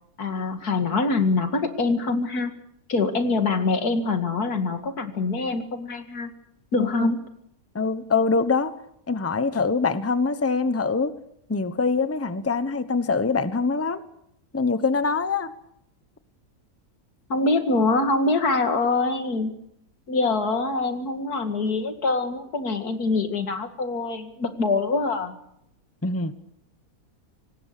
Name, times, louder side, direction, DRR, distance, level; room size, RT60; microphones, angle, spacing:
voice 1, 0.2-2.5 2.9-6.3 6.7-7.2 17.3-19.5 20.1-25.3, left 3 dB, 85° left, 2.7 m, -24 dB
voice 2, 6.8-7.1 7.7-8.7 9.1-11.1 11.5-14.0 14.5-15.5 26.0-26.3, left 4 dB, 10° left, 0.9 m, -24 dB
25.5 x 19.0 x 6.8 m
omnidirectional pair, 1.6 m